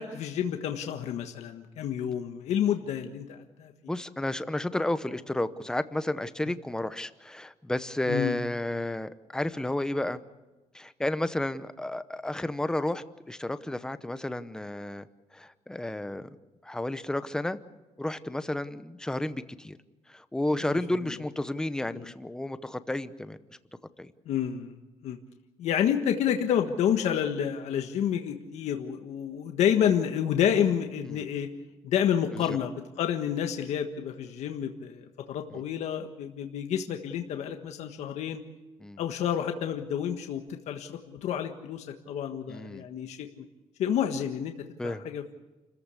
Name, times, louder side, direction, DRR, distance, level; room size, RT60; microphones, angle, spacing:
voice 1, 0.0-3.7 8.1-8.4 21.9-22.1 24.2-24.7 25.0-25.2 25.6-31.5 31.8-38.4 39.0-43.4 43.8-44.5 44.8-45.2, left 9 dB, 65° left, 5 dB, 1.5 m, -29 dB
voice 2, 3.9-10.2 10.7-15.1 15.3-16.3 16.6-17.6 18.0-19.8 20.1-23.4 24.0-24.1 31.1-31.2 32.3-32.6 35.5-35.6 38.8-39.0 42.5-42.9 44.8-45.0, left 1 dB, 5° left, 12 dB, 0.8 m, -32 dB
29.5 x 14.5 x 8.4 m, 1.2 s
cardioid pair, 180°, 12 cm